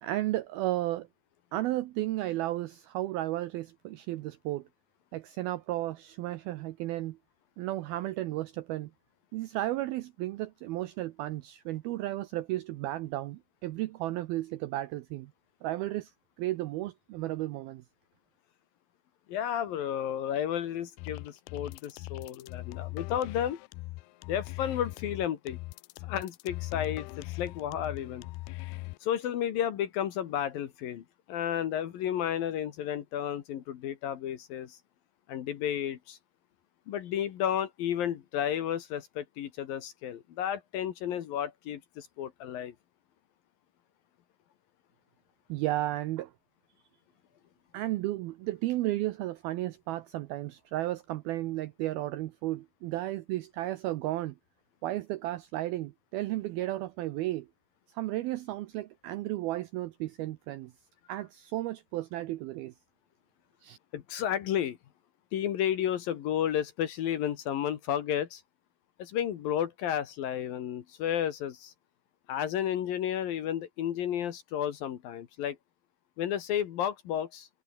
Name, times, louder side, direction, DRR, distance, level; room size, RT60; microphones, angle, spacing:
voice 1, 0.0-1.1 1.5-4.6 5.1-7.2 7.6-8.9 9.3-15.3 15.6-16.1 16.4-17.8 45.5-46.3 47.7-54.4 54.8-57.5 57.9-60.7 61.1-62.7 63.6-63.8, right 16 dB, 80° right, 2.2 m, -33 dB
voice 2, 19.3-23.6 24.3-25.6 26.0-28.3 29.0-34.8 35.3-36.2 36.9-42.7 63.9-64.8 65.3-68.4 69.0-71.7 72.3-75.6 76.2-77.5, left 10 dB, 60° left, 2.8 m, -32 dB
sound 1, 21.0-29.0, left 21 dB, 85° left, 2.2 m, -40 dB
omnidirectional pair, 5.2 m